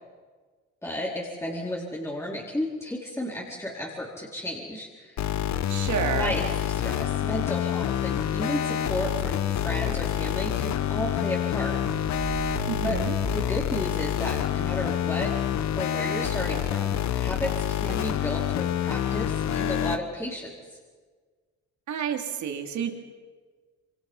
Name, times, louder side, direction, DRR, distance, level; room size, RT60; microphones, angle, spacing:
voice 1, 0.8-5.2 6.0-11.8 12.8-13.0 13.3-15.3 15.8-20.5, equal, 10° left, -4 dB, 4.4 m, -33 dB
sound 1, 5.2-20.0, left 10 dB, 65° left, 1.0 m, -27 dB
voice 2, 5.7-6.3 12.7-13.1 21.9-22.9, right 8 dB, 70° right, 5 dB, 2.8 m, -29 dB
sound 2, 11.8-14.6, right 7 dB, 40° right, 4.5 m, -37 dB
27.0 x 24.5 x 5.6 m, 1.5 s
cardioid pair, 90°, 30 cm